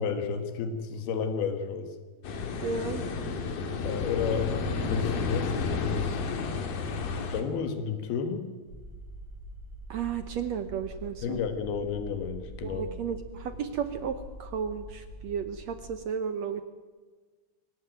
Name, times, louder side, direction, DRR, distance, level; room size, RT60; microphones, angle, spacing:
voice 1, 0.0-2.0 3.8-6.2 7.3-8.5 11.2-12.9, left 6 dB, 90° left, 7 dB, 3.5 m, -32 dB
sound 1, 2.2-7.4, left 4 dB, 70° left, 3.7 m, -31 dB
voice 2, 2.6-3.0 9.9-11.4 12.6-16.6, right 7 dB, 70° right, 9 dB, 1.7 m, -33 dB
sound 2, 8.7-15.9, equal, 35° right, 7.9 m, -44 dB
22.5 x 18.5 x 9.2 m, 1.4 s
omnidirectional pair, 4.3 m